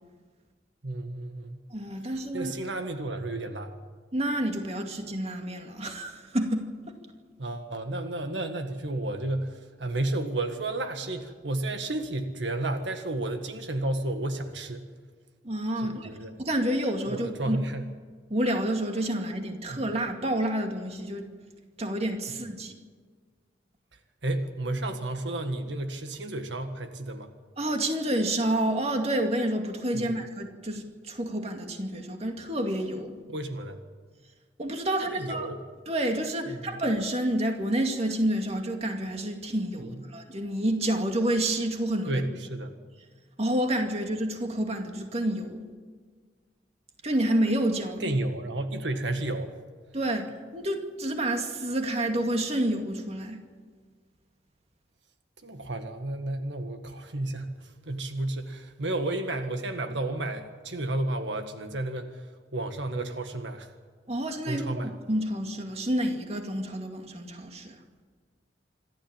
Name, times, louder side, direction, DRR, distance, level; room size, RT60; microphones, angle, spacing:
voice 1, 0.8-1.6 2.3-3.7 7.4-14.9 15.8-16.3 17.1-17.9 19.7-19.8 24.2-27.3 29.9-30.2 33.3-33.8 35.1-35.6 36.5-36.8 39.8-40.0 42.1-42.7 48.0-49.5 55.4-63.7 64.5-64.9, right 2 dB, 85° right, 6 dB, 1.7 m, -32 dB
voice 2, 1.7-2.5 4.1-7.0 15.4-16.1 16.4-17.6 18.3-21.3 21.8-22.8 27.6-33.2 34.6-35.5 35.9-42.2 43.4-45.6 47.0-48.1 49.9-50.2 50.5-53.4 64.1-67.8, right 1 dB, 35° right, 4 dB, 2.3 m, -29 dB
26.5 x 13.0 x 9.0 m, 1.5 s
head